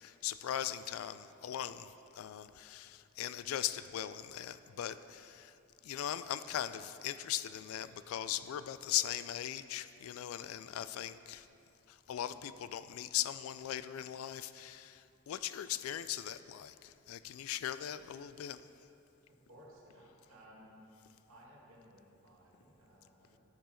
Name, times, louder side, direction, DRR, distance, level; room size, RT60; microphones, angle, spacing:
voice 1, 0.0-5.6 5.8-11.5 11.9-18.7, left 11 dB, 80° left, 13 dB, 0.3 m, -39 dB
voice 2, 19.5-20.8 21.3-23.4, equal, 90° right, -4 dB, 2.0 m, -58 dB
13.0 x 4.5 x 4.4 m, 2.7 s
head